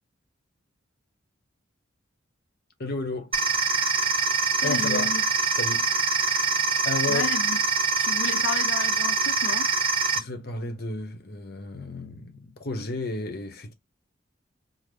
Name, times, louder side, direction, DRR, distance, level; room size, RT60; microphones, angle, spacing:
voice 1, 2.8-3.4 4.6-5.1 5.5-5.9 6.2-6.5 6.8-7.3 10.1-13.7, left 2 dB, 50° left, 0.9 m, -32 dB
sound 1, 3.3-10.2, right 4 dB, 30° right, 1.0 m, -24 dB
voice 2, 4.6-5.2 7.1-7.6 8.0-9.7, left 5 dB, 90° left, 0.5 m, -32 dB
3.8 x 2.0 x 3.2 m
head